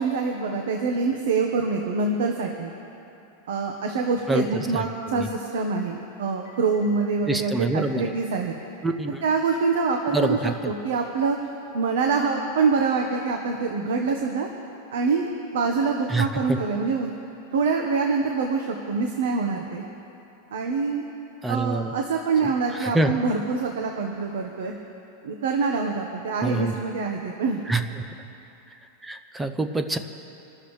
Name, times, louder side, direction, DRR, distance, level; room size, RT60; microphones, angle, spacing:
voice 1, 0.0-2.7 3.5-8.5 9.2-11.4 11.7-14.5 14.9-15.3 15.5-17.1 17.5-19.8 20.5-21.0 21.5-24.7 25.2-27.6, right 4 dB, 85° right, 2 dB, 1.3 m, -25 dB
Telephone, 3.7-3.8 5.9-6.0 6.3-6.8 7.3-7.4 7.8-7.9 8.2-8.3 8.8-8.9 9.3-9.4 9.7-10.3 11.3-11.4 12.8-12.9, left 5 dB, 65° left, 1.4 m, -53 dB
voice 2, 4.3-4.8 5.1-5.3 7.3-8.1 8.8-9.2 10.1-10.7 16.1-16.6 21.4-21.9 22.8-23.1 26.4-26.7 27.7-27.8 29.0-30.0, right 2 dB, 5° right, 8 dB, 0.5 m, -26 dB
26.0 x 13.0 x 3.3 m, 2.9 s
supercardioid pair, 180°, 0 cm